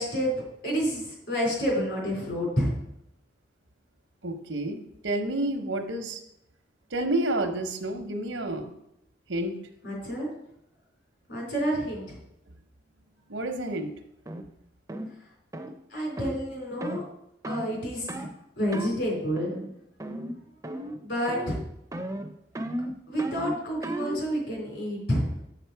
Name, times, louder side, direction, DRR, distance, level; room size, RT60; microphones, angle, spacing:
voice 1, 0.0-2.7 9.8-10.3 11.3-12.2 15.9-17.0 17.5-18.1 18.6-19.5 21.0-21.6 23.1-25.4, equal, 65° left, -1 dB, 3.3 m, -29 dB
voice 2, 4.2-6.2 6.9-8.7 9.3-9.6 13.3-13.9, right 1 dB, 80° right, 6 dB, 0.9 m, -29 dB
sound 1, 14.3-14.4 14.9-15.1 15.5-15.7 16.2-16.4 16.8-17.0 17.4-17.7 18.1-18.3 18.7-19.0 19.4-19.7 20.0-20.4 20.6-21.0 21.3-21.6 21.9-24.2, right 1 dB, 15° right, 0.5 m, -34 dB
6.9 x 5.9 x 4.6 m, 0.79 s
head